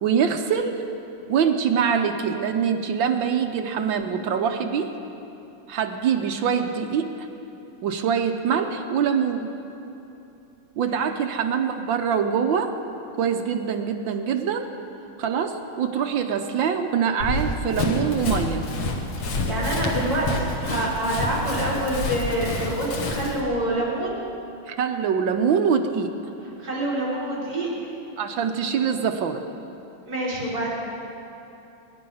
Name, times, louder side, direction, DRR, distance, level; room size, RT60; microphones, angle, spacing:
voice 1, 0.0-0.8 1.3-4.9 5.7-7.3 7.8-9.5 10.8-12.7 13.1-14.7 15.2-18.6 24.7-26.1 28.2-29.4, right 7 dB, 70° right, 6 dB, 1.4 m, -24 dB
Run, 17.2-23.4, left 2 dB, 75° left, 2.2 m, -28 dB
voice 2, 19.1-24.2 26.6-27.7 30.1-30.7, right 1 dB, 40° right, -7 dB, 4.6 m, -27 dB
23.5 x 10.5 x 5.6 m, 2.9 s
omnidirectional pair, 2.4 m